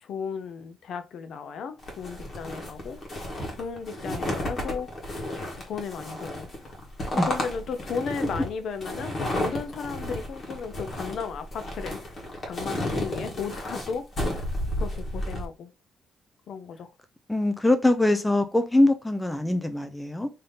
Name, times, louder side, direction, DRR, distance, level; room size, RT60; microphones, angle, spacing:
voice 1, 0.0-3.0 3.6-4.9 5.6-6.5 7.1-12.0 12.4-14.5 14.8-15.7 16.5-16.9, left 6 dB, 55° left, 0.5 m, -35 dB
sound 1, 1.8-15.5, left 1 dB, 35° left, 1.2 m, -32 dB
voice 2, 17.3-20.3, left 1 dB, 5° left, 0.4 m, -23 dB
3.4 x 2.7 x 3.8 m
cardioid pair, 150°, 0 cm